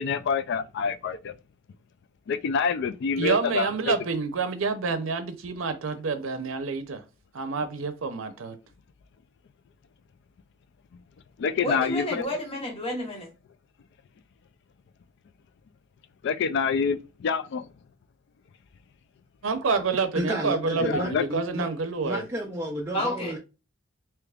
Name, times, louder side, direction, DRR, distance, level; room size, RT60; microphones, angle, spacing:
voice 1, 0.0-1.3 2.3-4.0 11.4-12.2 16.2-17.6 20.8-21.3, left 5 dB, 60° left, 0.3 m, -27 dB
voice 2, 3.2-7.0 7.3-8.6 19.4-22.2, right 4 dB, 85° right, 0.6 m, -28 dB
voice 3, 11.6-13.3 22.9-23.4, left 1 dB, 30° left, 1.1 m, -30 dB
voice 4, 20.1-21.7 22.0-23.4, right 1 dB, 10° right, 0.4 m, -31 dB
3.4 x 2.9 x 2.4 m
head